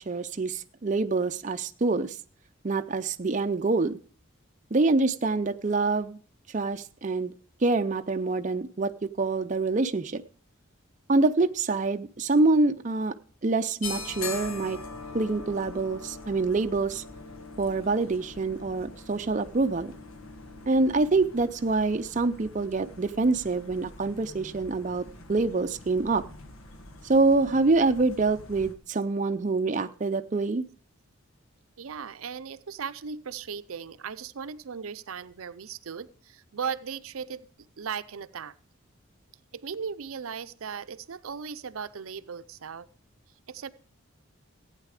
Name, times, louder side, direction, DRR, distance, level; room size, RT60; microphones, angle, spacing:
voice 1, 0.0-2.2 2.6-4.0 4.7-6.2 6.5-7.3 7.6-8.9 9.2-10.2 11.1-13.1 13.4-14.8 15.1-17.0 17.6-19.9 20.7-25.0 25.3-26.2 27.0-30.6, right 3 dB, 35° right, 8 dB, 0.5 m, -26 dB
sound 1, 13.8-28.8, left 3 dB, 85° left, 1.3 m, -43 dB
voice 2, 31.8-37.5 37.8-38.5 39.5-42.9 43.5-43.7, right 6 dB, 85° right, 13 dB, 0.6 m, -37 dB
15.0 x 9.1 x 4.9 m, 0.43 s
head